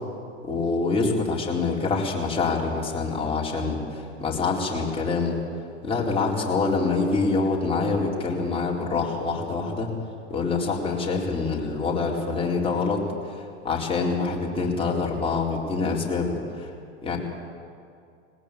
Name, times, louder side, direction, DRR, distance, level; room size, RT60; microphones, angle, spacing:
voice 1, 0.4-5.4 5.8-9.9 10.3-13.0 13.6-16.7 17.0-17.2, left 4 dB, 15° left, -3 dB, 4.3 m, -25 dB
19.5 x 18.5 x 8.6 m, 2.4 s
hypercardioid pair, 105°, 36 cm